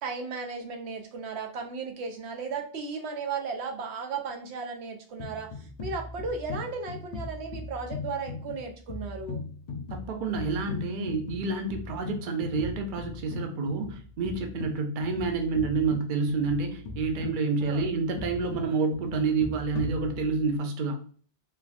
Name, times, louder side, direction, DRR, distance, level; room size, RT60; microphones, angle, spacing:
voice 1, 0.0-9.4 17.6-17.9, right 4 dB, 90° right, 4 dB, 0.9 m, -35 dB
sound 1, 5.2-20.6, left 3 dB, 55° left, 0.5 m, -39 dB
voice 2, 9.9-21.0, right 4 dB, 55° right, 4 dB, 0.6 m, -28 dB
3.3 x 2.4 x 2.3 m, 0.43 s
omnidirectional pair, 1.1 m